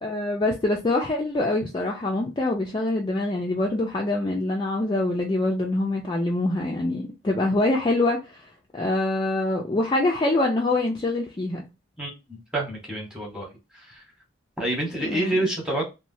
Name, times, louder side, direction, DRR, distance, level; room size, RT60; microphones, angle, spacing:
voice 1, 0.0-8.4 8.7-11.6 15.1-15.4, left 2 dB, 20° left, 0.3 m, -25 dB
voice 2, 12.0-13.5 13.7-14.0 14.6-15.8, right 1 dB, 5° right, 0.9 m, -28 dB
3.0 x 2.1 x 2.6 m
head